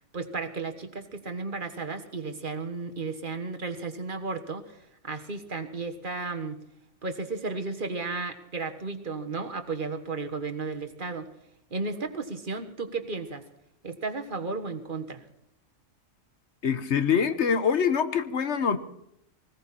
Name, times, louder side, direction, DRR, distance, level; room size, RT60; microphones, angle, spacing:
voice 1, 0.1-6.6 7.0-11.3 11.7-13.4 13.8-15.2, right 4 dB, 40° right, 1.6 m, -34 dB
voice 2, 16.6-18.8, left 7 dB, 60° left, 1.3 m, -24 dB
20.0 x 17.0 x 4.3 m
omnidirectional pair, 1.4 m